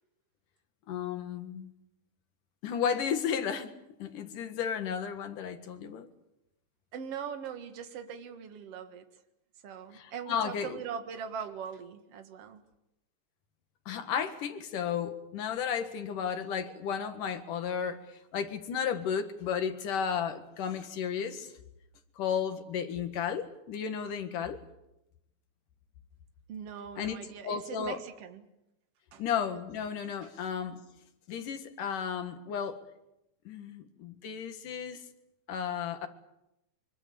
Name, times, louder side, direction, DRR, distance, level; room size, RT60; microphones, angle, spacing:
voice 1, 0.9-1.7 2.6-6.1 9.9-10.8 13.9-21.5 22.2-24.6 27.0-27.2 27.4-28.0 29.2-30.8 31.3-32.8 33.5-35.0 35.5-36.1, left 7 dB, 85° left, 3.3 m, -33 dB
voice 2, 6.9-9.1 9.6-12.6 26.5-28.5 29.1-29.2 30.2-30.3, right 7 dB, 55° right, 2.6 m, -41 dB
24.5 x 24.0 x 7.0 m
omnidirectional pair, 3.6 m